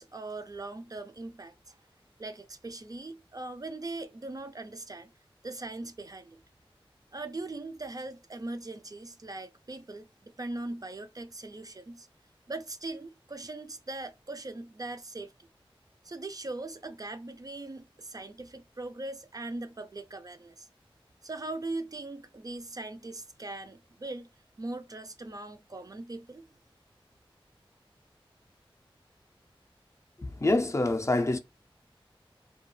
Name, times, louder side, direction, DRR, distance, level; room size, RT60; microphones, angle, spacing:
voice 1, 0.0-1.7 2.2-5.1 5.4-6.4 7.1-12.1 12.5-15.3 16.0-20.7 21.2-24.3 24.6-26.5, right 2 dB, 40° right, 0.3 m, -40 dB
voice 2, 30.2-31.4, left 2 dB, 30° left, 0.4 m, -26 dB
2.3 x 2.2 x 3.0 m
wide cardioid pair, 50°, 10 cm